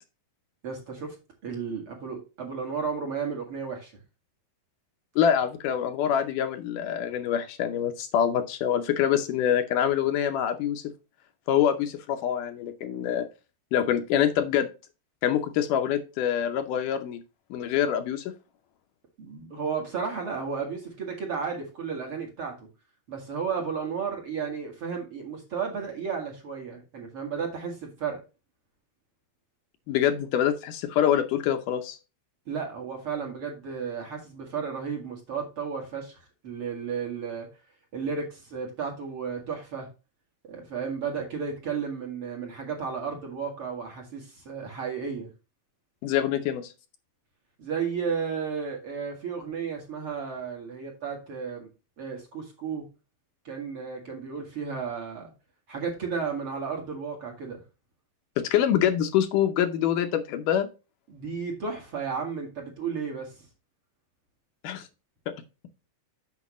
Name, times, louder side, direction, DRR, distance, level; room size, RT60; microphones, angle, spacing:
voice 1, 0.6-1.2 1.4-3.9 19.2-22.7 23.1-28.2 32.5-37.5 37.9-39.9 40.5-45.3 47.6-51.7 52.0-52.9 53.4-55.3 55.7-57.6 61.1-63.5, right 6 dB, 45° right, 0 dB, 2.3 m, -33 dB
voice 2, 5.2-10.8 11.5-13.3 13.7-14.7 15.2-17.2 17.5-18.3 29.9-32.0 46.0-46.7 58.4-60.7 64.6-64.9, left 9 dB, 75° left, 7 dB, 2.2 m, -25 dB
8.4 x 6.2 x 3.0 m, 0.30 s
omnidirectional pair, 3.9 m